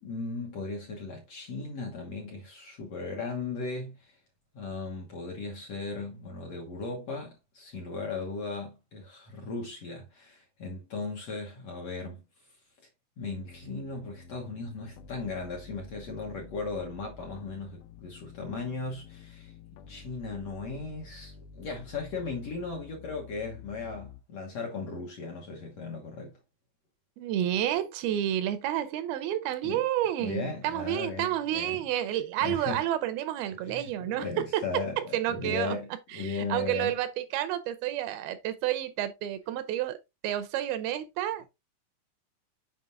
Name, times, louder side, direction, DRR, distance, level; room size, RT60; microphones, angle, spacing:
voice 1, 0.0-4.1 4.5-12.2 13.2-19.5 19.9-26.3 29.6-29.8 30.2-31.8 32.4-32.9 33.6-36.9, left 3 dB, 60° left, 1.8 m, -37 dB
sound 1, 13.2-24.2, left 6 dB, 80° left, 2.0 m, -50 dB
voice 2, 27.2-35.8 36.1-41.5, right 12 dB, 85° right, 2.6 m, -30 dB
7.5 x 5.4 x 2.6 m
omnidirectional pair, 4.3 m